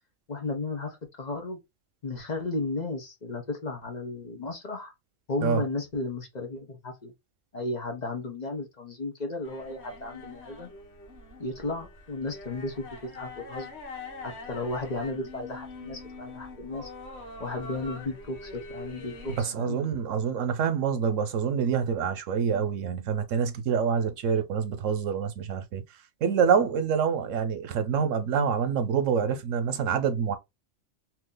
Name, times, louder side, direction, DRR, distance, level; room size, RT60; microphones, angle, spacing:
voice 1, 0.3-1.6 2.0-4.9 5.3-7.1 7.5-10.7 11.4-13.8 14.2-16.9 17.4-19.8, left 2 dB, 40° left, 0.9 m, -34 dB
sound 1, 9.4-19.4, left 2 dB, 60° left, 1.4 m, -44 dB
voice 2, 19.4-25.8 26.2-30.4, right 7 dB, 90° right, 1.1 m, -26 dB
3.0 x 2.7 x 3.7 m
omnidirectional pair, 1.3 m